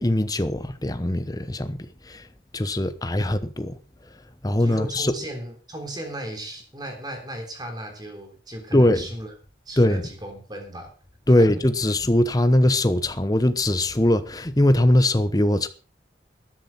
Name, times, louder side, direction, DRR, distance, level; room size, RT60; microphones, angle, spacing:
voice 1, 0.0-2.3 2.5-3.8 4.4-5.1 8.7-9.1 9.8-10.0 11.3-15.7, left 1 dB, 20° left, 0.9 m, -21 dB
voice 2, 4.6-9.3 9.6-10.9 11.4-11.5, right 1 dB, 25° right, 3.3 m, -36 dB
13.0 x 10.5 x 5.7 m
head